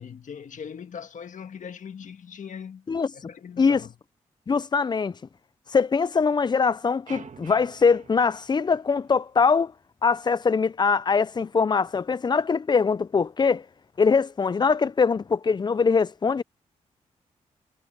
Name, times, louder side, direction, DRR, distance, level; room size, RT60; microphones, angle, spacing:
voice 1, 0.0-2.8 3.1-3.9, left 7 dB, 65° left, 1.7 m, -40 dB
voice 2, 4.5-5.2 5.7-9.7 10.0-13.6 14.0-16.4, left 5 dB, 30° left, 0.4 m, -22 dB
sound 1, 7.1-9.4, right 6 dB, 60° right, 2.0 m, -47 dB
supercardioid pair, 50°, 14 cm